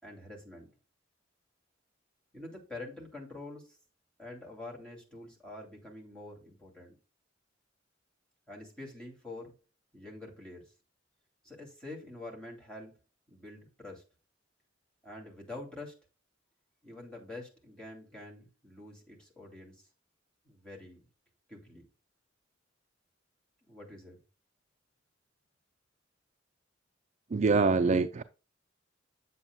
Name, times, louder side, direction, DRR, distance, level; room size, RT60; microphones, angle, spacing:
voice 1, 0.0-0.7 2.3-3.8 4.2-7.0 8.5-9.5 9.9-10.7 11.4-12.9 13.3-14.0 15.0-15.9 16.8-19.9 20.4-21.1 21.5-21.9 23.7-24.2, left 2 dB, 5° left, 2.6 m, -46 dB
voice 2, 27.3-28.2, right 4 dB, 40° right, 0.4 m, -25 dB
8.0 x 7.5 x 2.3 m
head